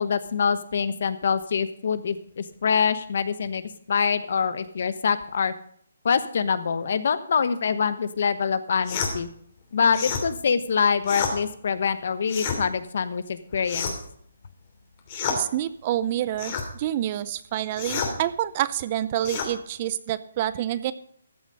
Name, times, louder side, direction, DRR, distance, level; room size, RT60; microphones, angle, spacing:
voice 1, 0.0-3.6 3.9-5.5 6.0-9.3 9.7-13.9, left 6 dB, 60° left, 13 dB, 1.1 m, -25 dB
sound 1, 8.9-9.1 9.9-10.3 11.0-11.4 12.3-12.6 13.6-14.1 15.1-15.4 16.4-16.7 17.8-18.1 19.2-19.5, left 6 dB, 35° left, 2.9 m, -29 dB
voice 2, 15.3-20.9, right 12 dB, 30° right, 16 dB, 0.6 m, -27 dB
14.0 x 7.7 x 5.3 m, 0.64 s
hypercardioid pair, 155°, 0 cm